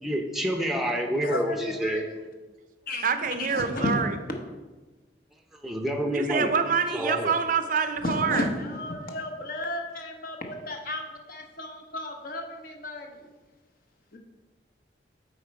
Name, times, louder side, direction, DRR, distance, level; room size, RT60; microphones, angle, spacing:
voice 1, 0.0-2.0 5.6-6.5 6.9-7.3, equal, ahead, 3 dB, 0.6 m, -28 dB
voice 2, 1.2-2.0 2.9-3.0 3.5-3.9 8.0-11.0 11.3-13.1 14.1-14.2, left 2 dB, 50° left, 2 dB, 1.0 m, -33 dB
voice 3, 3.0-4.2 6.1-8.5, right 5 dB, 50° right, 9 dB, 0.5 m, -26 dB
8.7 x 4.3 x 4.6 m, 1.2 s
head